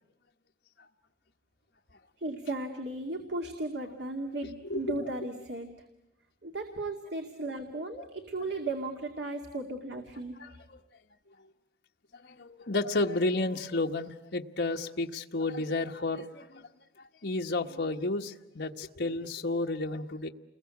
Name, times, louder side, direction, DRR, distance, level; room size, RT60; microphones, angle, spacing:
voice 1, 2.2-5.7 6.4-10.3, right 2 dB, 75° right, 3 dB, 2.3 m, -36 dB
voice 2, 12.2-16.7 17.2-20.3, left 2 dB, 75° left, 2 dB, 1.3 m, -31 dB
30.0 x 21.5 x 8.3 m, 0.99 s
head